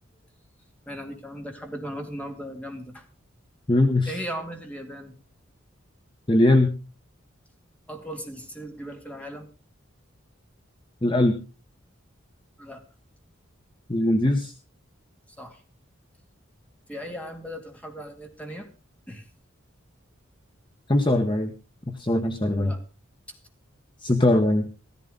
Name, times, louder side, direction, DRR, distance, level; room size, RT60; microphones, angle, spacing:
voice 1, 0.9-3.0 4.1-5.1 7.9-9.5 12.6-12.8 15.4-15.6 16.9-18.7 19.1-19.2 22.5-22.8 23.3-23.4, equal, 5° left, 3 dB, 2.4 m, -37 dB
voice 2, 3.7-4.1 6.3-6.7 11.0-11.4 13.9-14.5 20.9-21.5 21.9-22.7 24.0-24.7, left 1 dB, 25° left, 6 dB, 1.0 m, -21 dB
15.0 x 14.5 x 3.9 m, 0.31 s
head